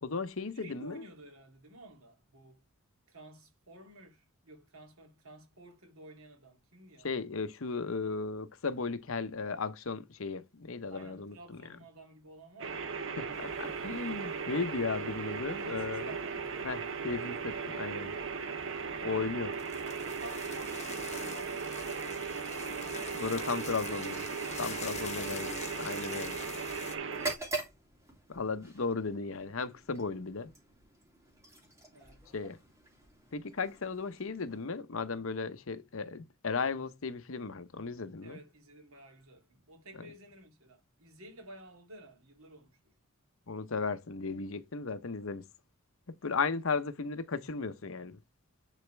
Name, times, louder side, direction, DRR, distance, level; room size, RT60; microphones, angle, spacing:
voice 1, 0.0-1.0 7.0-11.6 13.2-16.0 16.6-18.2 19.0-19.5 23.1-24.3 24.6-26.4 28.3-30.5 32.3-32.6 33.3-38.4 43.5-45.4 46.2-48.2, left 4 dB, 70° left, 0.9 m, -35 dB
voice 2, 0.5-2.6 3.1-7.1 10.9-13.0 15.5-16.6 18.9-19.4 20.2-21.9 25.0-25.4 31.9-32.2 38.2-42.9 46.2-46.5, right 1 dB, 80° right, 2.7 m, -52 dB
sound 1, 12.6-27.3, right 5 dB, 60° right, 1.0 m, -37 dB
sound 2, 13.3-27.0, left 7 dB, 30° left, 1.2 m, -48 dB
sound 3, 27.1-34.9, right 3 dB, 15° right, 2.7 m, -44 dB
10.5 x 4.2 x 3.3 m
head